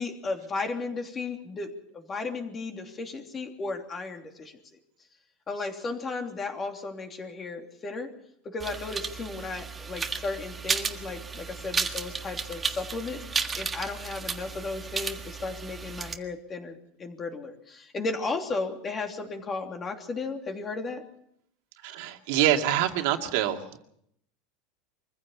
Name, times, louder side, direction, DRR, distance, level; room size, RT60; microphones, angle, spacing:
voice 1, 0.0-4.5 5.5-8.1 8.5-21.0, left 3 dB, 25° left, 4 dB, 3.1 m, -35 dB
sound 1, 8.6-16.2, right 5 dB, 15° right, 1.6 m, -33 dB
voice 2, 21.8-23.8, right 11 dB, 70° right, 4 dB, 2.2 m, -25 dB
24.0 x 15.5 x 7.3 m, 0.74 s
supercardioid pair, 135°, 0 cm